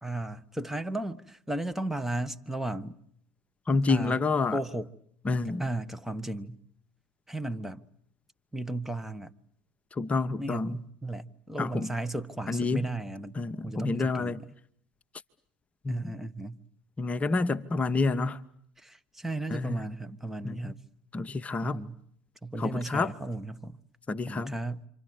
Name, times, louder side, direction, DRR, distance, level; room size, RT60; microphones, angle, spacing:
voice 1, 0.0-3.0 3.9-4.2 4.5-4.9 5.6-6.6 7.3-7.8 8.5-9.3 10.4-13.4 13.6-14.5 15.9-16.6 18.8-20.8 21.6-22.0 22.4-23.8 24.3-24.9, right 2 dB, 5° right, 1.3 m, -35 dB
voice 2, 3.7-4.6 5.2-5.6 9.9-10.8 11.6-11.9 12.5-12.9 13.3-14.4 15.8-16.1 17.0-18.4 19.5-19.8 20.4-20.7 21.1-21.8 22.6-23.1 24.1-24.5, left 3 dB, 25° left, 1.1 m, -28 dB
29.0 x 25.0 x 8.2 m
figure-of-eight pair, 60°, 6 cm